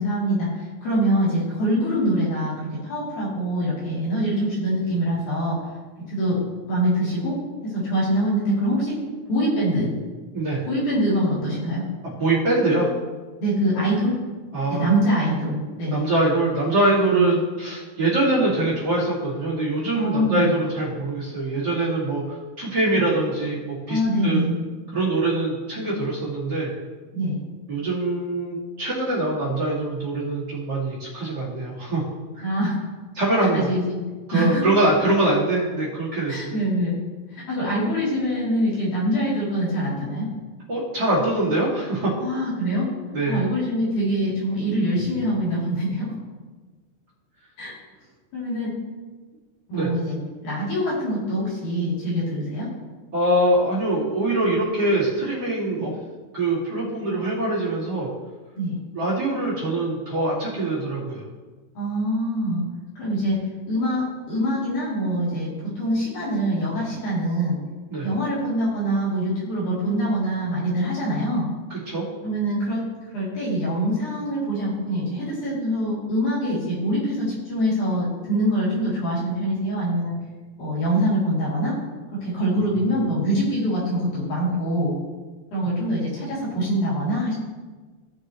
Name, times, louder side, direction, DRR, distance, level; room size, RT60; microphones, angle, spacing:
voice 1, 0.0-5.6 6.1-6.4 6.7-9.0 9.3-9.9 10.7-11.8 13.4-14.1 14.7-16.0 17.1-17.2 19.9-20.5 22.9-23.0 23.9-24.5 27.1-27.4 32.4-32.7 33.5-34.0 34.3-34.7 36.3-37.0 37.3-40.3 42.2-42.9 43.3-46.1 47.6-47.7 48.3-48.7 49.7-50.2 50.4-52.7 55.8-55.9 58.5-58.7 61.7-62.6 63.0-65.5 65.8-67.6 68.0-71.5 72.2-72.8 73.1-80.1 80.6-81.8 82.2-84.9 85.5-87.3, equal, 75° left, -8 dB, 4.7 m, -24 dB
voice 2, 12.2-12.9 14.5-14.9 15.9-24.4 24.9-26.7 27.7-32.0 32.4-32.5 33.1-33.7 34.3-36.6 40.7-42.1 43.1-43.4 49.7-49.9 53.1-55.9 56.3-58.1 58.9-61.2 67.9-68.1 71.7-72.1, right 2 dB, 35° right, -8 dB, 2.6 m, -23 dB
16.0 x 6.4 x 3.1 m, 1.3 s
omnidirectional pair, 3.6 m